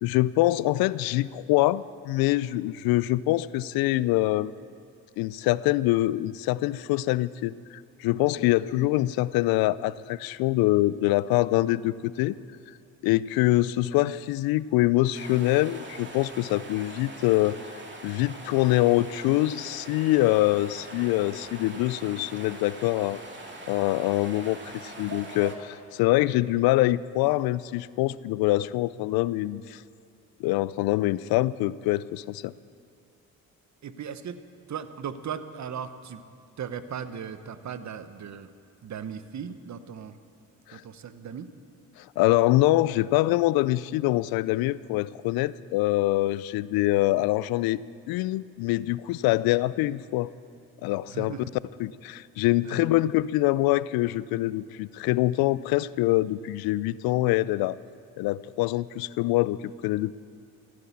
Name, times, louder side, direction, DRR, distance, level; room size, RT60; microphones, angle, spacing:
voice 1, 0.0-4.5 5.2-12.3 13.0-17.6 18.0-23.2 23.7-29.8 30.4-32.5 40.7-40.8 42.0-47.8 48.1-50.3 50.8-51.4 51.8-57.8 58.2-60.1, left 17 dB, 75° left, 19 dB, 0.5 m, -24 dB
sound 1, 15.1-25.6, right 2 dB, 30° right, 2.4 m, -42 dB
voice 2, 33.8-34.4 34.7-36.2 36.6-38.5 38.8-40.1 40.7-41.5 51.1-51.5 52.6-52.8, right 7 dB, 50° right, 12 dB, 1.0 m, -37 dB
15.0 x 9.8 x 8.4 m, 2.5 s
supercardioid pair, 60°, 36 cm